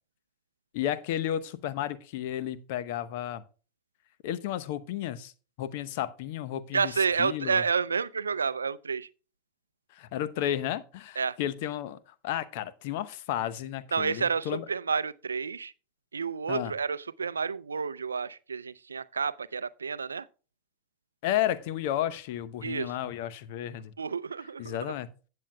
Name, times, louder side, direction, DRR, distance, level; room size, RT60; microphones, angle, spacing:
voice 1, 0.7-3.4 4.2-5.3 5.6-6.9 7.2-7.6 9.9-12.0 12.2-14.6 16.5-16.7 21.2-23.9 24.6-25.1, left 11 dB, 60° left, 0.8 m, -32 dB
voice 2, 6.7-9.1 11.2-11.4 13.9-15.7 16.1-20.3 22.6-22.9 24.0-24.8, right 5 dB, 90° right, 0.4 m, -30 dB
15.5 x 7.5 x 2.2 m
hypercardioid pair, 90°, 0 cm